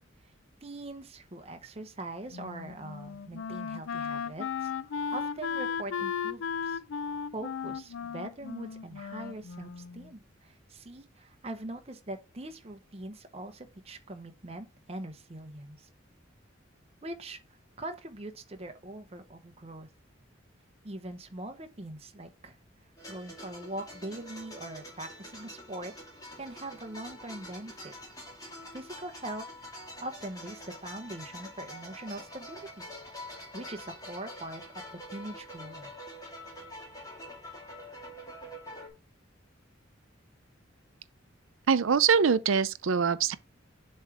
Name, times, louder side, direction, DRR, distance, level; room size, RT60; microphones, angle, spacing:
voice 1, 0.6-6.8 7.3-15.9 17.0-17.4 17.8-19.9 20.8-22.6 23.1-25.9 26.3-27.9 28.3-29.5 30.0-32.9 33.1-34.6 35.1-35.9, right 1 dB, 30° right, 0.9 m, -42 dB
Wind instrument woodwind instrument, 2.3-10.1, left 6 dB, 75° left, 0.4 m, -36 dB
sound 1, 23.0-38.9, left 1 dB, 20° left, 2.0 m, -46 dB
voice 2, 41.7-43.4, right 6 dB, 80° right, 0.5 m, -23 dB
7.3 x 3.3 x 4.8 m
head